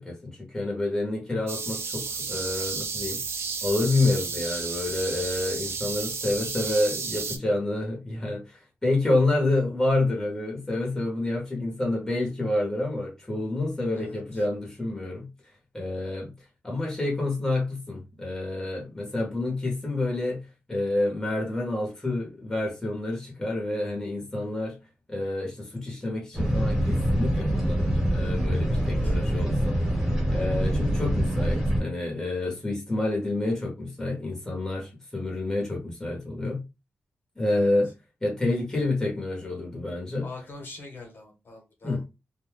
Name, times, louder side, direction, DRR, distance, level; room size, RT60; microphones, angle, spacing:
voice 1, 0.0-3.2 3.6-15.3 15.7-16.3 16.6-20.4 20.7-24.8 25.1-29.8 30.3-36.6 37.4-37.9 38.2-40.2 41.8-42.0, left 2 dB, 15° left, 1.2 m, -28 dB
sound 1, 1.5-7.4, right 5 dB, 75° right, 0.6 m, -32 dB
voice 2, 13.9-14.4 28.7-29.2 37.5-37.7 40.2-42.0, left 3 dB, 55° left, 1.3 m, -44 dB
sound 2, 26.3-31.8, equal, 10° right, 1.4 m, -25 dB
2.5 x 2.3 x 3.4 m
wide cardioid pair, 115°, 4 cm